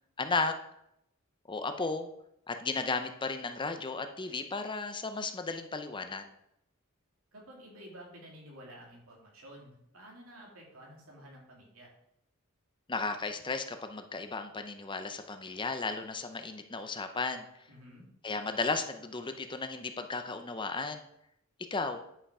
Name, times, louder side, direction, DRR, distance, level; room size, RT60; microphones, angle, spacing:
voice 1, 0.2-0.5 1.5-2.1 2.5-6.3 12.9-17.4 18.2-21.0 21.7-22.0, left 3 dB, 25° left, 7 dB, 0.6 m, -34 dB
voice 2, 7.3-11.9 17.7-18.0, equal, 80° right, -1 dB, 2.7 m, -51 dB
10.0 x 5.6 x 4.8 m, 0.77 s
head